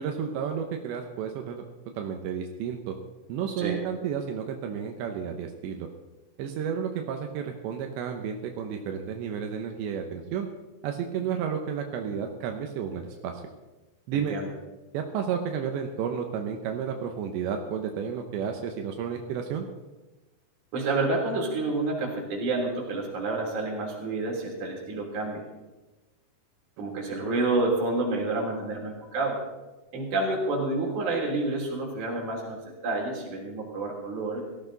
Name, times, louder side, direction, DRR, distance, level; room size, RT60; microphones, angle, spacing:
voice 1, 0.0-1.6 2.0-3.0 3.3-5.9 6.4-10.5 10.8-13.4 14.1-14.4 14.9-19.7, right 7 dB, 85° right, 4 dB, 3.3 m, -32 dB
voice 2, 14.1-14.5 20.7-25.5 26.8-29.4 29.9-32.6 32.8-34.4, right 2 dB, 45° right, -1 dB, 4.2 m, -29 dB
18.0 x 14.5 x 4.0 m, 1.1 s
omnidirectional pair, 5.1 m